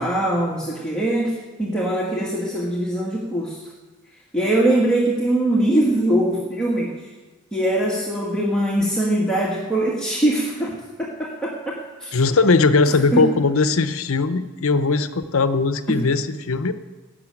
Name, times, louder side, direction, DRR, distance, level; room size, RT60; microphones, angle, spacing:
voice 1, 0.0-3.6 4.3-7.1 7.5-12.1 12.9-13.2 15.9-16.0, right 1 dB, 5° left, -5 dB, 1.7 m, -22 dB
voice 2, 12.1-16.7, left 3 dB, 65° left, 11 dB, 0.8 m, -19 dB
16.5 x 6.7 x 9.1 m, 1.2 s
head